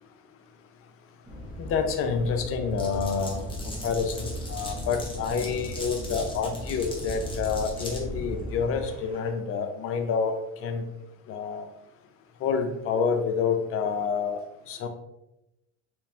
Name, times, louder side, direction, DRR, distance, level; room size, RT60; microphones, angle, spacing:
sound 1, 1.2-9.3, equal, 15° right, 1.2 m, -37 dB
voice 1, 1.6-10.8 11.3-11.7 12.4-14.9, left 5 dB, 40° left, 6 dB, 0.6 m, -28 dB
Glass, 2.8-8.0, left 2 dB, 15° left, 1.0 m, -41 dB
3.3 x 3.2 x 3.1 m, 0.89 s
supercardioid pair, 105°, 34 cm